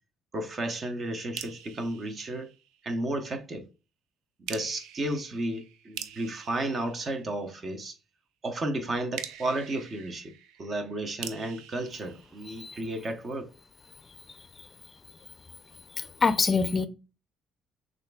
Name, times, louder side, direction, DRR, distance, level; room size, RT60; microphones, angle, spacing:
voice 1, 0.3-2.5 2.8-3.7 4.4-8.0 8.4-10.3 10.6-13.5, right 1 dB, 40° right, 0.7 m, -33 dB
sound 1, 1.3-3.1 4.5-7.8 9.1-13.1, right 9 dB, 85° right, 0.4 m, -45 dB
voice 2, 16.0-16.9, left 4 dB, 35° left, 0.4 m, -25 dB
6.4 x 2.5 x 2.2 m
supercardioid pair, 85°, 0 cm